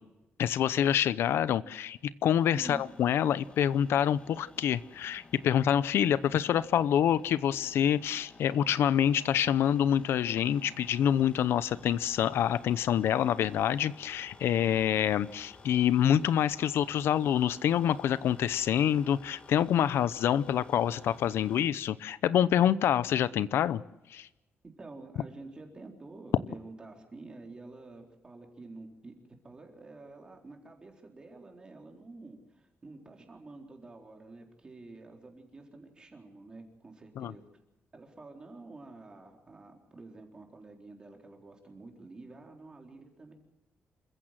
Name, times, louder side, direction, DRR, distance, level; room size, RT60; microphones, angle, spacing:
voice 1, 0.4-23.8 24.1-24.3 37.2-37.3, left 10 dB, 90° left, 17 dB, 0.7 m, -26 dB
sound 1, 2.3-21.7, left 4 dB, 25° left, 1.8 m, -54 dB
voice 2, 24.6-29.1 29.4-37.4 37.9-43.3, right 3 dB, 20° right, 2 dB, 4.0 m, -49 dB
27.5 x 15.0 x 7.6 m, 1.0 s
wide cardioid pair, 170°, 4 cm